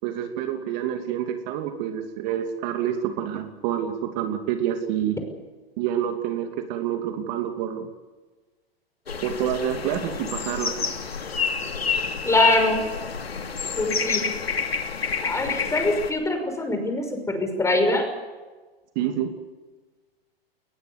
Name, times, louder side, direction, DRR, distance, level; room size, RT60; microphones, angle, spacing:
voice 1, 0.0-5.2 5.8-7.9 9.2-10.9 18.9-19.3, right 10 dB, 45° right, 5 dB, 2.8 m, -28 dB
sound 1, 9.1-16.1, left 6 dB, 85° left, 2.7 m, -28 dB
voice 2, 12.3-12.8 13.8-14.2 15.2-18.1, left 2 dB, 10° left, 6 dB, 5.7 m, -23 dB
21.5 x 20.5 x 8.3 m, 1.3 s
hypercardioid pair, 110°, 30 cm